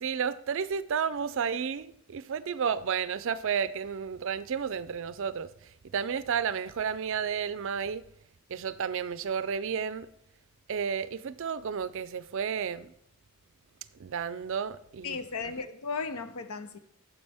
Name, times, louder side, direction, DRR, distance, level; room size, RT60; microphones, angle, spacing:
voice 1, 0.0-8.0 8.5-10.1 10.7-12.9 14.0-15.2, right 7 dB, 60° right, 0.4 m, -32 dB
voice 2, 15.0-16.8, left 4 dB, 85° left, 0.7 m, -35 dB
9.5 x 7.2 x 3.5 m
head